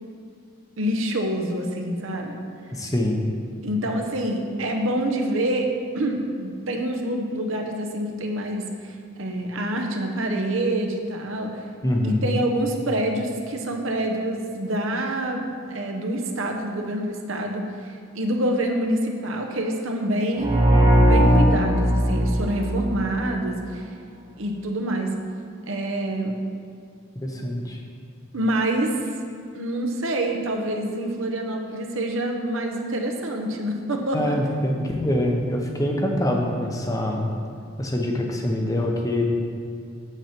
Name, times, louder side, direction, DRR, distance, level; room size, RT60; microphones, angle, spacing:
voice 1, 0.8-2.4 3.6-11.6 12.0-20.6 21.0-23.9 24.4-25.1 25.7-26.4 28.3-29.0 29.5-34.4, right 1 dB, 75° right, 3 dB, 0.9 m, -26 dB
voice 2, 2.7-3.2 11.8-12.2 27.2-27.8 34.1-37.3 37.8-39.2, left 1 dB, 15° left, 1 dB, 0.7 m, -24 dB
sound 1, 20.4-23.2, equal, 20° right, 0.7 m, -18 dB
8.0 x 7.3 x 4.4 m, 2.4 s
head